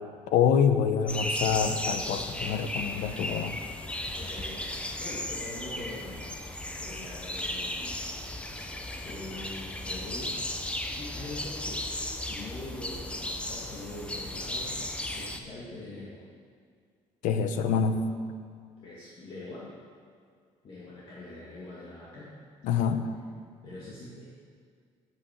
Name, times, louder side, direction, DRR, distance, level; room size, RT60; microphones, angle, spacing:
voice 1, 0.3-3.6 17.2-18.1 22.6-23.1, left 7 dB, 85° left, 9 dB, 0.8 m, -26 dB
sound 1, 1.1-15.4, left 1 dB, 10° left, 0.6 m, -35 dB
voice 2, 4.1-6.2 6.8-8.0 9.0-10.4 10.9-16.2 18.8-19.7 20.6-22.3 23.6-24.4, left 1 dB, 40° left, -6 dB, 1.8 m, -43 dB
8.5 x 8.1 x 7.2 m, 2.1 s
cardioid pair, 165°, 13 cm